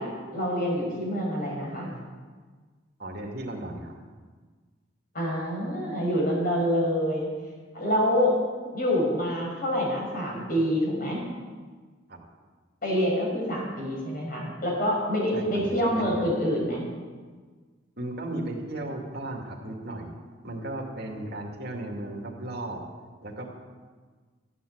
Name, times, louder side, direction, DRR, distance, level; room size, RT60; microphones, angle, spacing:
voice 1, 0.0-1.9 5.1-7.3 7.7-8.3 8.7-11.2 12.8-16.9, equal, 50° left, -2 dB, 5.5 m, -26 dB
voice 2, 3.0-3.9 12.1-12.2 15.3-15.5 15.8-16.3 18.0-20.1 20.4-22.8 23.2-23.5, right 1 dB, 55° right, -1 dB, 2.5 m, -35 dB
14.5 x 8.8 x 8.1 m, 1.5 s
head